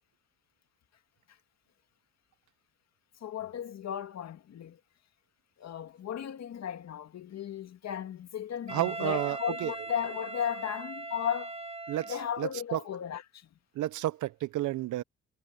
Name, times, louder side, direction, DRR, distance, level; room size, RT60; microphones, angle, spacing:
voice 1, 3.2-4.8 5.6-11.5 12.1-13.5, left 9 dB, 60° left, 2.0 m, -35 dB
Wind instrument woodwind instrument, 8.7-12.5, right 2 dB, 20° right, 1.0 m, -40 dB
voice 2, 8.7-9.7 11.9-12.8 13.8-15.0, right 14 dB, 80° right, 0.8 m, -31 dB
cardioid pair, 90°, 30 cm